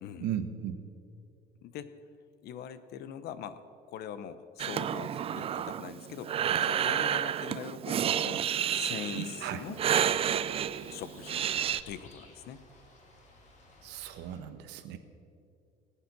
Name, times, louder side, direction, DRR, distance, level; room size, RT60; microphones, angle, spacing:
voice 1, 0.2-0.8 9.4-9.6 13.8-15.0, right 10 dB, 85° right, 9 dB, 1.2 m, -36 dB
voice 2, 1.6-2.0 2.4-3.6 3.9-8.4 8.7-9.8 10.9-11.5 11.9-12.6, left 9 dB, 65° left, 13 dB, 0.8 m, -42 dB
Breathing, 4.6-11.8, right 9 dB, 35° right, 0.4 m, -30 dB
sound 1, 9.4-14.4, left 1 dB, 40° left, 2.8 m, -56 dB
19.0 x 8.9 x 6.0 m, 2.5 s
cardioid pair, 135°, 17 cm